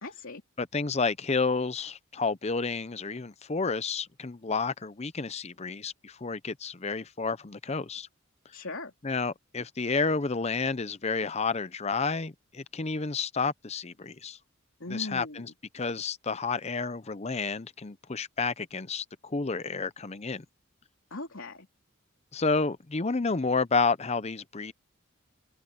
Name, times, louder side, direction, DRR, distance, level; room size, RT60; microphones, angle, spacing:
voice 1, 0.0-0.4 8.5-8.9 14.8-15.5 21.1-21.7, left 2 dB, 70° left, 3.2 m, -39 dB
voice 2, 0.6-8.1 9.0-14.4 14.9-20.4 22.3-24.7, left 4 dB, 30° left, 0.7 m, -30 dB
head